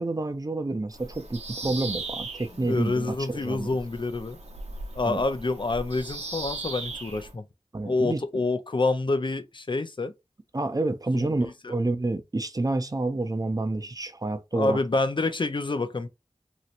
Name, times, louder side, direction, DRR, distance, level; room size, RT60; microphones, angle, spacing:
voice 1, 0.0-3.7 5.0-5.2 7.7-8.2 10.5-14.8, right 2 dB, 35° right, 0.5 m, -29 dB
Bird vocalization bird call bird song, 0.9-7.3, right 3 dB, 75° right, 0.8 m, -38 dB
voice 2, 2.6-4.4 4.9-7.4 7.8-10.1 11.1-11.7 14.5-16.1, left 3 dB, 45° left, 0.5 m, -27 dB
3.0 x 2.8 x 2.5 m
wide cardioid pair, 45°, 11 cm